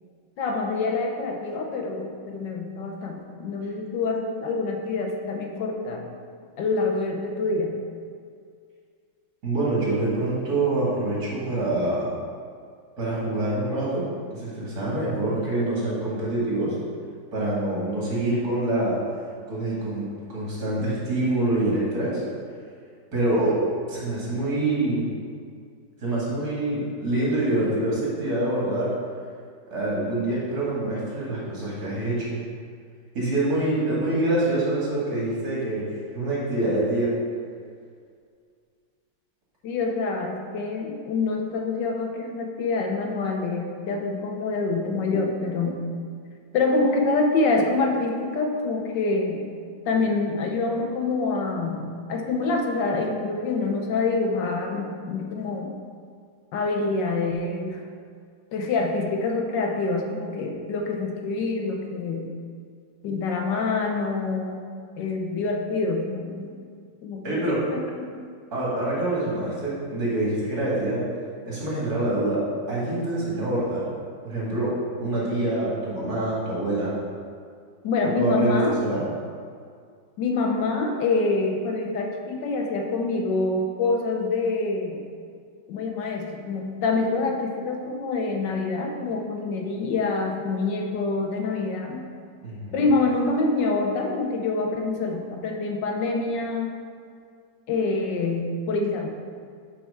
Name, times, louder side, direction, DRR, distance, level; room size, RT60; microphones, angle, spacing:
voice 1, 0.4-6.0 6.6-7.8 39.6-45.9 46.5-49.5 49.9-55.8 56.5-57.8 58.5-62.3 63.0-64.6 65.0-66.5 67.0-68.1 77.8-78.7 80.2-85.0 85.7-92.0 92.7-96.7 97.7-99.1, left 3 dB, 75° left, 2 dB, 1.4 m, -26 dB
voice 2, 9.4-12.1 13.0-16.8 17.3-19.0 19.5-22.2 23.1-23.6 23.9-25.1 26.0-28.9 29.7-32.4 33.1-37.1 67.2-67.6 68.5-71.0 71.5-73.9 74.2-76.9 78.0-79.0 92.4-92.9, right 2 dB, 55° right, -7 dB, 2.6 m, -26 dB
6.0 x 5.9 x 5.5 m, 2.2 s
omnidirectional pair, 2.0 m